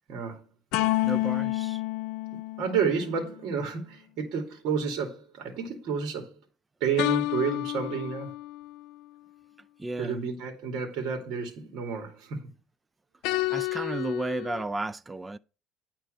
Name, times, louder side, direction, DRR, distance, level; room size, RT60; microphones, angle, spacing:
voice 1, 0.1-0.4 2.3-6.3 6.8-8.3 10.0-12.4, right 6 dB, 60° right, 2.5 m, -30 dB
sound 1, 0.7-3.3 7.0-8.8 13.2-14.6, left 17 dB, 80° left, 0.5 m, -29 dB
voice 2, 1.0-1.8 9.8-10.2 13.5-15.4, right 2 dB, 15° right, 0.4 m, -33 dB
10.0 x 4.5 x 6.5 m
cardioid pair, 135°, 0 cm